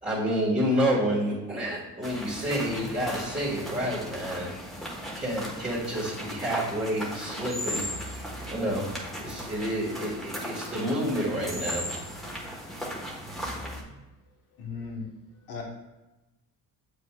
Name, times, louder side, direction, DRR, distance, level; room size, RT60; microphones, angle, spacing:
voice 1, 0.0-4.6 5.1-8.0 8.5-11.9, equal, 20° right, -10 dB, 1.8 m, -29 dB
sound 1, 2.0-13.8, equal, ahead, 1.5 m, -37 dB
voice 2, 14.6-15.0 15.5-15.6, left 5 dB, 80° left, 0 dB, 1.4 m, -36 dB
7.5 x 5.4 x 2.4 m, 1.0 s
cardioid pair, 115°, 37 cm